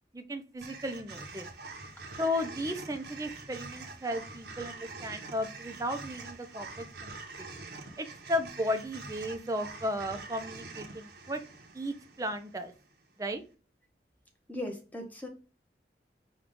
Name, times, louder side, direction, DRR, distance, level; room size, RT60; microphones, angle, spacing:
voice 1, 0.1-1.5 2.2-7.5 8.0-11.4 11.7-12.7 13.2-13.4, left 1 dB, 20° right, 7 dB, 0.4 m, -35 dB
sound 1, 0.6-12.9, right 3 dB, 65° right, 0.8 m, -45 dB
voice 2, 14.5-15.3, left 1 dB, 10° left, 3 dB, 0.7 m, -38 dB
5.1 x 2.3 x 3.6 m, 0.35 s
head